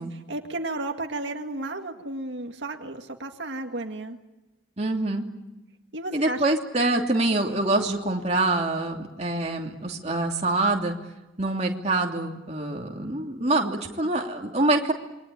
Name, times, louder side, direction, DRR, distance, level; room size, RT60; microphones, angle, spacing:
voice 1, 0.1-4.2 5.9-6.4, right 2 dB, 80° right, 4 dB, 1.9 m, -33 dB
voice 2, 4.8-5.3 6.1-10.9 11.4-14.9, right 2 dB, 35° right, 1 dB, 2.9 m, -25 dB
28.0 x 23.5 x 8.8 m, 1.0 s
head